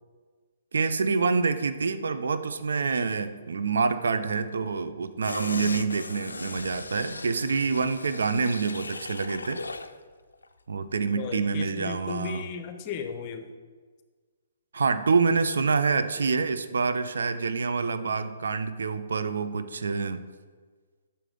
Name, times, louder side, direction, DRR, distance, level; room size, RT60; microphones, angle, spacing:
voice 1, 0.7-9.6 10.7-12.4 14.7-20.2, right 4 dB, 75° right, 11 dB, 0.4 m, -27 dB
sound 1, 5.2-10.0 10.3-10.4, left 3 dB, 85° left, 0.3 m, -38 dB
voice 2, 11.1-13.5, left 7 dB, 35° left, 8 dB, 0.6 m, -35 dB
6.7 x 5.0 x 3.7 m, 1.5 s
figure-of-eight pair, 130°, 0 cm